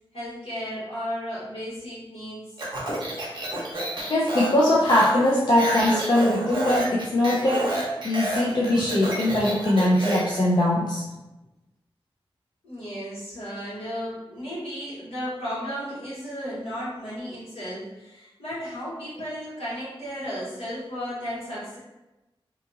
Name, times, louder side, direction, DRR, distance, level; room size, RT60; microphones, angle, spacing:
voice 1, 0.1-2.5 12.6-21.8, equal, 80° left, -10 dB, 1.5 m, -34 dB
Speech, 2.6-10.4, right 1 dB, 50° right, 0.7 m, -29 dB
voice 2, 4.1-11.0, left 1 dB, 50° left, -5 dB, 0.4 m, -21 dB
2.8 x 2.3 x 2.6 m, 1.0 s
wide cardioid pair, 100°, 10 cm